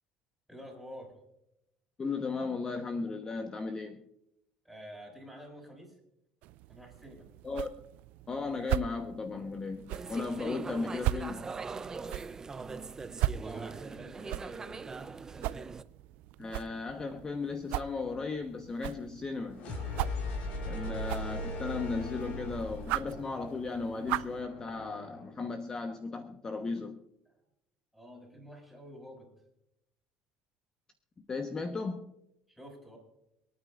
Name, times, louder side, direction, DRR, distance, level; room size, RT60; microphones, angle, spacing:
voice 1, 0.5-1.2 4.6-6.0 6.7-7.3 13.4-14.8 20.6-21.0 27.3-27.4 27.9-29.3 32.5-33.0, equal, ahead, -1 dB, 5.9 m, -49 dB
voice 2, 2.0-4.0 7.4-7.7 8.3-11.5 16.4-19.7 20.7-27.0 31.3-32.1, left 4 dB, 25° left, 6 dB, 1.1 m, -36 dB
sound 1, 6.4-24.4, right 16 dB, 70° right, 0.4 m, -39 dB
sound 2, 9.9-15.8, right 4 dB, 20° right, 0.5 m, -41 dB
sound 3, 19.5-25.4, left 2 dB, 60° left, 4.1 m, -39 dB
27.0 x 9.5 x 2.5 m, 0.83 s
supercardioid pair, 105°, 3 cm